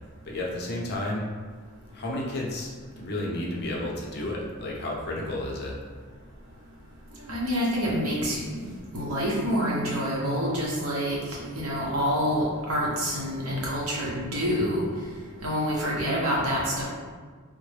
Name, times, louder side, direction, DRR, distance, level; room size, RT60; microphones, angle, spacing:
voice 1, 0.2-1.3 1.9-2.7 3.0-5.8, left 1 dB, 50° left, -3 dB, 0.6 m, -31 dB
voice 2, 7.3-8.6 8.9-14.8 15.4-16.8, equal, 70° right, -5 dB, 0.9 m, -27 dB
3.6 x 2.1 x 3.2 m, 1.5 s
head